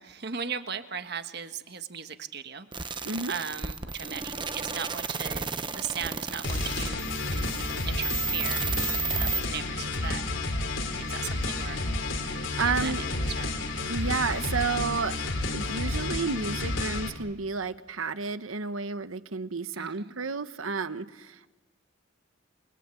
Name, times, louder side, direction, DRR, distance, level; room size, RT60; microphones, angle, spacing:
voice 1, 0.0-7.1 7.9-8.7 9.1-10.2 11.0-11.8 12.6-13.0 13.4-13.6 19.8-20.1, right 7 dB, 55° right, 9 dB, 1.5 m, -37 dB
sound 1, 2.7-9.4, right 5 dB, 25° right, 0.9 m, -33 dB
sound 2, 6.4-17.1, left 2 dB, 70° left, 3.5 m, -31 dB
voice 2, 12.3-13.0 13.9-15.2 15.5-21.5, right 4 dB, 90° right, 12 dB, 1.2 m, -31 dB
28.5 x 24.5 x 8.4 m, 1.1 s
head